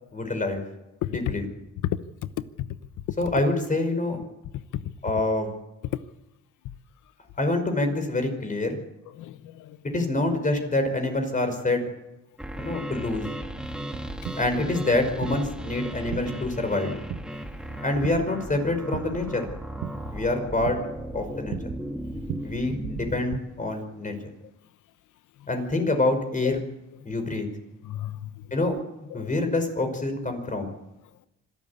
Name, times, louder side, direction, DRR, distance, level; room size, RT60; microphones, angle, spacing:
voice 1, 0.1-0.6 1.1-1.4 3.2-4.2 5.0-5.5 7.4-8.8 9.8-11.8 12.6-13.2 14.4-17.0 17.8-19.4 20.1-20.8 21.1-21.7 22.4-24.2 25.5-26.6 27.0-27.5 28.5-28.8 29.1-30.7, left 2 dB, 25° left, 5.3 m, -26 dB
voice 2, 9.2-9.8 26.4-26.6 27.8-28.4 29.1-29.3, left 13 dB, 80° left, 1.0 m, -31 dB
sound 1, 12.4-23.2, right 1 dB, 5° right, 2.1 m, -36 dB
sound 2, 13.6-23.4, right 9 dB, 75° right, 1.7 m, -40 dB
25.5 x 12.5 x 8.5 m
cardioid pair, 90°, 30 cm